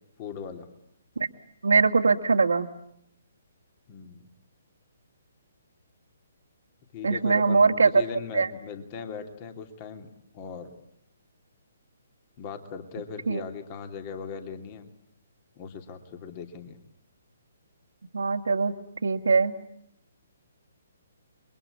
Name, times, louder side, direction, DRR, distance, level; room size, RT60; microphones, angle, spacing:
voice 1, 0.2-0.7 3.9-4.3 6.9-10.1 10.3-10.7 12.4-14.8 15.6-16.8, left 6 dB, 35° left, 6 dB, 2.8 m, -39 dB
voice 2, 1.6-2.7 7.0-8.0 8.3-8.5 13.3-13.4 18.1-18.7 19.0-19.5, right 4 dB, 70° right, 6 dB, 1.8 m, -21 dB
29.5 x 23.0 x 8.5 m, 0.73 s
figure-of-eight pair, 130°, 0 cm